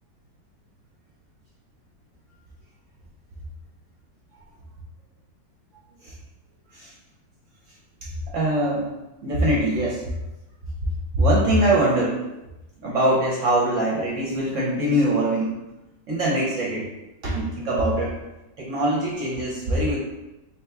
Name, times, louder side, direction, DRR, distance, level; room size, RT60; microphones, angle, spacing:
voice 1, 8.3-8.9 9.2-10.0 11.1-12.2 12.8-15.5 16.1-16.9 17.2-18.2 18.6-20.0, right 1 dB, 60° right, -4 dB, 0.8 m, -22 dB
3.5 x 2.9 x 3.4 m, 0.99 s
omnidirectional pair, 1.9 m